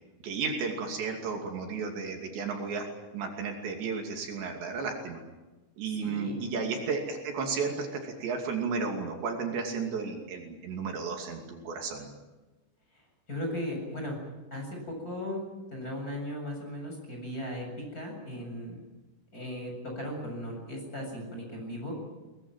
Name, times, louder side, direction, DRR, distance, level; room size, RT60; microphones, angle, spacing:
voice 1, 0.2-2.9 3.1-5.2 5.8-12.1, right 5 dB, 70° right, 2 dB, 4.8 m, -33 dB
voice 2, 6.0-6.4 13.3-14.1 14.5-15.4 15.7-18.8 19.3-21.9, equal, 20° left, 1 dB, 7.8 m, -37 dB
23.0 x 21.0 x 9.0 m, 1.1 s
omnidirectional pair, 5.4 m